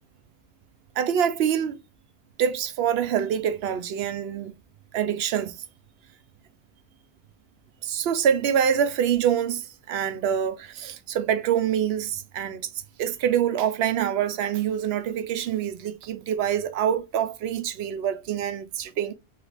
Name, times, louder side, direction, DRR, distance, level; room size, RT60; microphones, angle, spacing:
voice 1, 1.0-1.8 2.4-4.5 4.9-5.6 7.8-12.7 13.0-19.2, right 9 dB, 70° right, 0.8 m, -25 dB
3.2 x 2.4 x 3.2 m
omnidirectional pair, 1.1 m